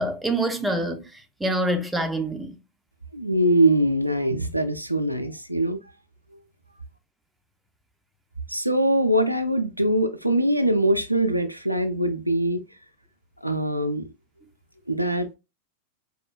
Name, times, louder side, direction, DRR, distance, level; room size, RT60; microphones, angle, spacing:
voice 1, 0.0-2.6, right 1 dB, 5° right, 0.4 m, -26 dB
voice 2, 3.1-5.8 8.5-12.6 13.4-14.1 14.9-15.4, right 1 dB, 90° right, 0.3 m, -22 dB
4.7 x 2.1 x 2.2 m
figure-of-eight pair, 90°, 0 cm